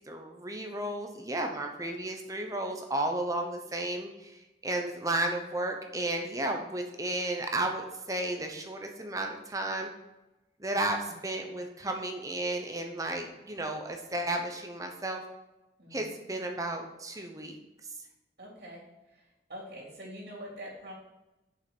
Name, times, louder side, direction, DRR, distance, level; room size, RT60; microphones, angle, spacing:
voice 1, 0.1-9.9 10.6-15.2 15.9-17.6, right 1 dB, 20° right, 3 dB, 0.9 m, -33 dB
voice 2, 15.8-16.1 18.4-18.8 19.1-20.9, equal, 60° right, -4 dB, 3.2 m, -45 dB
6.8 x 5.8 x 6.1 m, 1.0 s
head